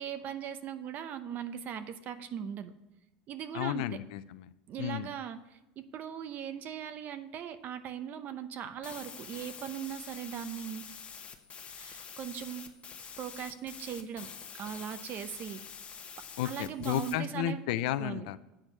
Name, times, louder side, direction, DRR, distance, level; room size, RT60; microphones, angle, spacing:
voice 1, 0.0-2.7 3.3-4.0 4.7-10.8 11.7-12.7 13.2-14.3 14.5-15.6 16.4-17.6 18.0-18.3, right 9 dB, 45° right, 11 dB, 0.8 m, -39 dB
voice 2, 3.5-4.5 4.8-5.1 16.4-18.4, left 12 dB, 75° left, 13 dB, 0.5 m, -33 dB
sound 1, 8.8-17.1, left 7 dB, 30° left, 1.1 m, -47 dB
8.7 x 4.4 x 6.4 m, 0.96 s
supercardioid pair, 105°, 4 cm